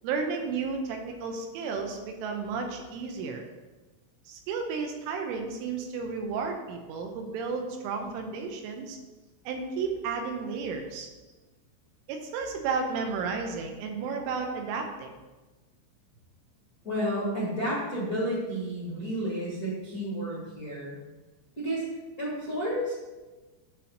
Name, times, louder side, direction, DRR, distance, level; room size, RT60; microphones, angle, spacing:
voice 1, 0.0-3.4 4.3-9.0 9.5-11.1 12.1-15.1, right 5 dB, 80° right, 3 dB, 3.1 m, -33 dB
voice 2, 16.8-20.9 21.6-21.8 22.2-22.9, equal, 90° left, -8 dB, 0.8 m, -31 dB
10.0 x 3.4 x 6.3 m, 1.2 s
omnidirectional pair, 5.9 m